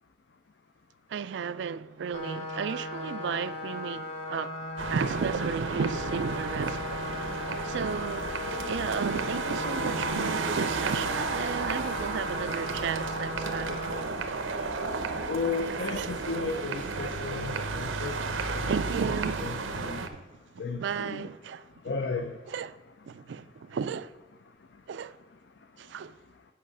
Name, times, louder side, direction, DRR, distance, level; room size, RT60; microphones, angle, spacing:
voice 1, 1.1-4.6 4.9-6.8 7.6-8.3 8.7-13.8 15.9-16.1 18.2-18.3 18.6-20.2 20.5-21.7 22.5-22.8 23.0-24.1 24.9-25.2 25.8-26.2, right 6 dB, 65° right, 0.3 m, -33 dB
sound 1, 2.1-14.0, left 2 dB, 35° left, 1.0 m, -37 dB
sound 2, 4.8-20.1, right 4 dB, 90° right, 0.8 m, -33 dB
Piano, 8.5-15.6, left 2 dB, 10° left, 0.7 m, -50 dB
voice 2, 15.3-18.2 18.5-18.7 19.8-20.0 20.6-21.3 21.8-22.3, left 4 dB, 65° left, 0.5 m, -33 dB
8.6 x 5.6 x 5.3 m
head